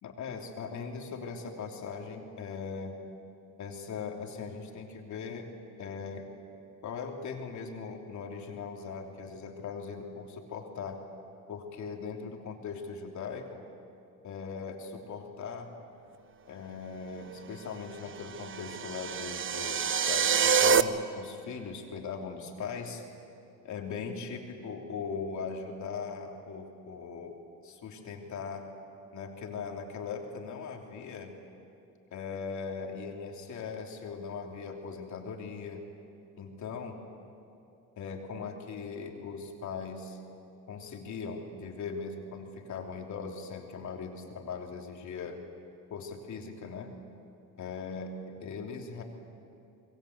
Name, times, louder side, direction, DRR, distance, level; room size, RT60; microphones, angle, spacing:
voice 1, 0.0-3.0 3.6-5.5 5.8-6.3 6.8-11.0 11.5-13.6 14.2-15.7 16.5-23.0 23.6-28.7 29.1-31.4 32.1-35.8 36.4-37.0 38.0-40.2 40.7-45.4 45.9-46.9 47.6-49.0, left 5 dB, 70° left, 2 dB, 3.2 m, -39 dB
sound 1, 18.2-20.8, right 6 dB, 40° right, 0.9 m, -26 dB
26.5 x 22.0 x 8.1 m, 2.7 s
cardioid pair, 90°, 30 cm